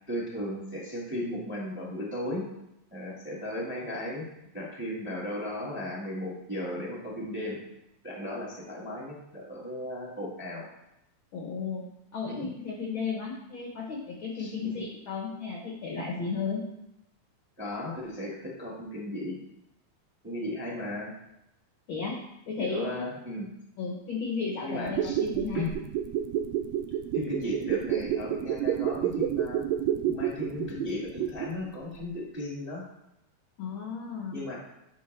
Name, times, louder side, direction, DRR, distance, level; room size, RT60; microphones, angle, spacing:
voice 1, 0.1-2.5 2.9-4.2 4.5-7.6 8.0-10.7 12.2-12.5 14.3-14.8 17.6-19.4 20.2-21.1 22.6-23.5 24.6-25.2 25.5-25.7 27.1-29.6 30.0-32.8 34.3-34.5, left 1 dB, 5° right, -4 dB, 0.9 m, -35 dB
voice 2, 11.3-11.8 12.1-16.6 21.9-22.2 22.5-23.1 23.8-25.7 33.6-34.4, left 5 dB, 70° left, -1 dB, 1.2 m, -34 dB
sound 1, 24.8-31.7 32.0-32.1, right 10 dB, 80° right, 1.7 m, -29 dB
10.5 x 5.1 x 3.2 m, 0.84 s
omnidirectional pair, 3.5 m